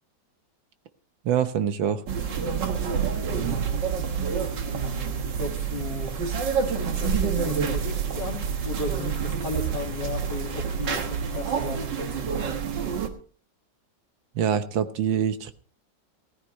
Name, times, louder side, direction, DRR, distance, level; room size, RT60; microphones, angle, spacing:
voice 1, 1.3-2.0 14.4-15.5, right 8 dB, 85° right, 10 dB, 1.8 m, -25 dB
sound 1, 2.1-13.1, right 6 dB, 70° right, 2.1 m, -28 dB
voice 2, 4.7-6.2 6.8-12.6, left 2 dB, 65° left, 2 dB, 2.8 m, -36 dB
17.0 x 14.5 x 3.1 m, 0.42 s
omnidirectional pair, 2.0 m